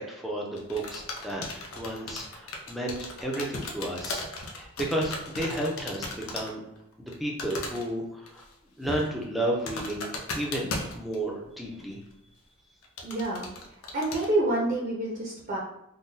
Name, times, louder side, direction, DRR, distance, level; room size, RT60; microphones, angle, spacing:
voice 1, 0.0-1.4 1.8-6.6 7.0-8.5 8.8-12.0, right 1 dB, ahead, -2 dB, 0.5 m, -32 dB
sound 1, 0.6-6.5 6.8-7.1 7.4-7.9 8.3-8.5 8.8-11.4 11.8-11.9 12.8-14.3, left 3 dB, 90° left, 0.6 m, -36 dB
voice 2, 13.0-13.5 13.9-15.6, right 2 dB, 45° right, -4 dB, 0.6 m, -27 dB
3.7 x 2.2 x 2.6 m, 0.80 s
head